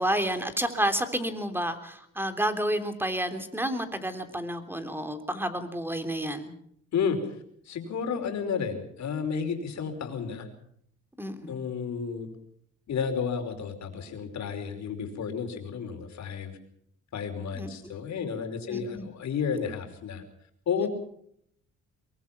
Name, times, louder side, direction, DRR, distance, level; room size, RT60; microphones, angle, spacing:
voice 1, 0.0-6.5 11.2-11.6 17.5-17.7 18.7-19.1 20.8-20.9, right 1 dB, 5° right, 8 dB, 3.3 m, -30 dB
voice 2, 6.9-7.3 7.6-10.5 11.5-12.3 12.9-16.5 17.1-20.2 20.7-20.9, left 6 dB, 65° left, 5 dB, 5.0 m, -31 dB
23.0 x 22.5 x 6.0 m, 0.69 s
cardioid pair, 90°, 30 cm